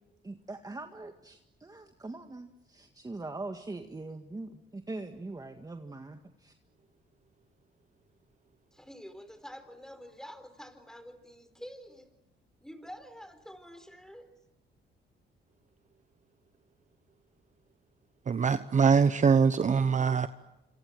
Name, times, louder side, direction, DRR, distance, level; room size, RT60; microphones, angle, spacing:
voice 1, 0.2-6.6, right 2 dB, 20° right, 5 dB, 1.9 m, -42 dB
voice 2, 8.7-12.1 12.6-14.3, equal, 5° left, 10 dB, 4.6 m, -48 dB
voice 3, 18.3-20.3, right 6 dB, 40° right, 11 dB, 1.0 m, -23 dB
27.0 x 27.0 x 7.7 m, 0.93 s
cardioid pair, 90°, 20 cm